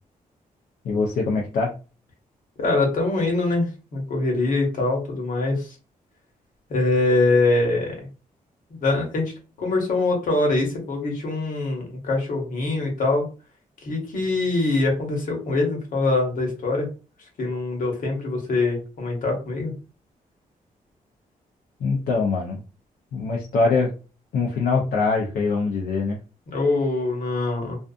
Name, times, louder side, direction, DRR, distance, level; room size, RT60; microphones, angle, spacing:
voice 1, 0.8-1.7 21.8-22.6 23.1-23.9 24.3-26.2, left 4 dB, 80° left, -2 dB, 0.6 m, -23 dB
voice 2, 2.6-5.7 6.7-7.9 8.8-9.3 9.6-13.3 13.8-16.9 17.4-19.7 26.5-27.8, left 2 dB, 65° left, 0 dB, 1.1 m, -23 dB
2.5 x 2.4 x 2.4 m, 0.33 s
wide cardioid pair, 150°, 15 cm